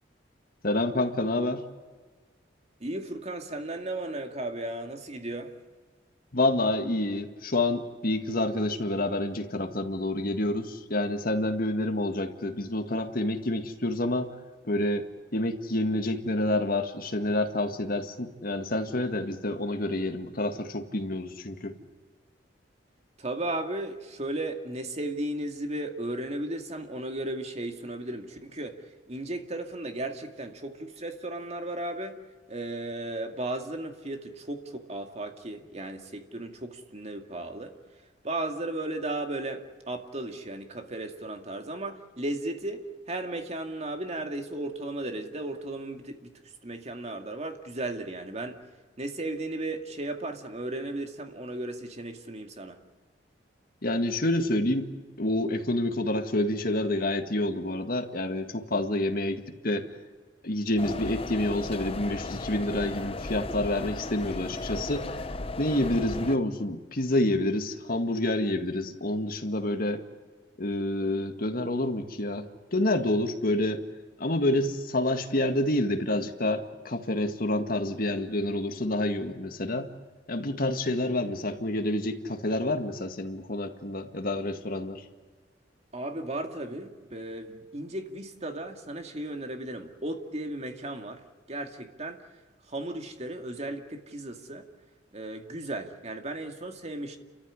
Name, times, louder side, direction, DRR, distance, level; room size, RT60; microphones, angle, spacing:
voice 1, 0.6-1.6 6.3-14.3 14.7-21.8 53.8-54.9 55.2-59.9 60.4-65.1 65.6-70.0 70.6-73.8 74.2-79.9 80.3-85.0, left 1 dB, 55° left, 6 dB, 1.9 m, -28 dB
voice 2, 2.8-5.5 23.2-28.8 29.1-32.2 32.5-37.7 38.2-46.3 46.6-48.6 49.0-52.8 85.9-91.2 91.5-92.2 92.7-94.7 95.1-97.2, right 1 dB, 40° right, 5 dB, 2.3 m, -35 dB
sound 1, 60.8-66.4, left 2 dB, 30° left, 0.8 m, -36 dB
30.0 x 14.0 x 9.8 m, 1.4 s
head